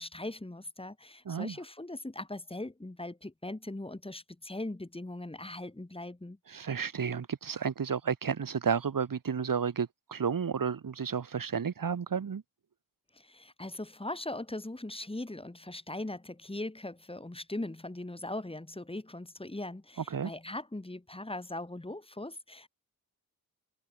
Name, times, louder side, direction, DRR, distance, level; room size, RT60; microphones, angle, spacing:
voice 1, 0.0-6.4 13.1-22.7, left 2 dB, 15° left, 6.1 m, -40 dB
voice 2, 1.3-1.6 6.5-12.4 20.1-20.3, right 6 dB, 60° right, 5.7 m, -32 dB
open air
cardioid pair, 75°, 38 cm